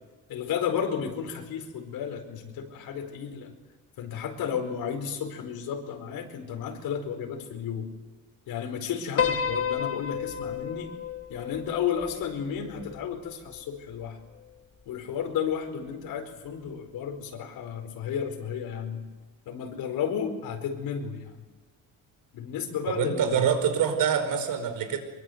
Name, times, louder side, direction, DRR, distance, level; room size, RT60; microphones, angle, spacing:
voice 1, 0.3-3.5 4.0-7.9 8.5-10.9 11.3-14.2 14.9-19.0 19.5-21.4 22.3-23.5, left 7 dB, 85° left, 4 dB, 4.8 m, -33 dB
Piano, 9.2-13.6, left 7 dB, 40° left, 1.7 m, -32 dB
voice 2, 22.9-25.0, right 8 dB, 70° right, 7 dB, 5.2 m, -25 dB
25.0 x 23.0 x 8.0 m, 1.3 s
cardioid pair, 165°, 35 cm